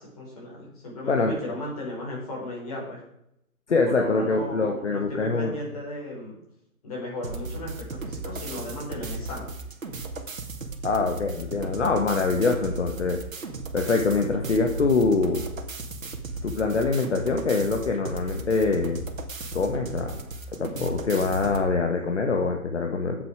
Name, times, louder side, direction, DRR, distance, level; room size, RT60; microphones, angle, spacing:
voice 1, 0.0-3.0 3.8-6.4 6.8-9.5, left 1 dB, 25° left, -4 dB, 5.2 m, -35 dB
voice 2, 3.7-5.5 10.8-13.2 13.7-15.5 16.4-19.0 19.5-20.2 20.5-23.2, left 4 dB, 55° left, 3 dB, 1.7 m, -24 dB
sound 1, 7.2-21.7, right 3 dB, 65° right, 2.2 m, -36 dB
13.5 x 8.4 x 4.9 m, 0.78 s
hypercardioid pair, 175°, 43 cm